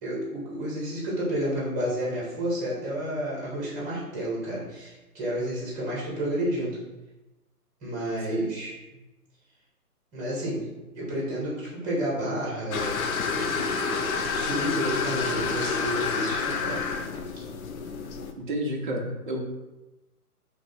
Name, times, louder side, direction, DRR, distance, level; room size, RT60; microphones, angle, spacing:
voice 1, 0.0-6.8 7.8-9.0 10.1-10.6 10.9-13.0 13.3-14.0 14.3-16.8, equal, 10° right, -5 dB, 0.8 m, -31 dB
sound 1, 12.7-18.3, left 5 dB, 65° left, 0.5 m, -29 dB
voice 2, 18.4-19.4, equal, 35° right, 0 dB, 0.4 m, -30 dB
3.0 x 2.5 x 4.1 m, 1.0 s
hypercardioid pair, 145°, 46 cm